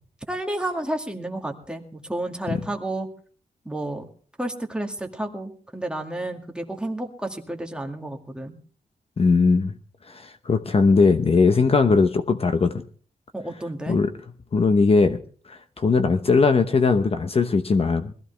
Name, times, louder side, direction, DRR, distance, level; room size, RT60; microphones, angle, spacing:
voice 1, 0.3-3.1 3.7-4.0 4.4-8.6 13.3-14.0, right 1 dB, 5° right, 2 dB, 2.1 m, -31 dB
voice 2, 9.2-9.7 10.1-12.7 13.9-14.1 14.5-15.2 15.5-18.1, left 4 dB, 45° left, 8 dB, 0.9 m, -19 dB
21.0 x 15.0 x 3.4 m, 0.44 s
wide cardioid pair, 115°, 14 cm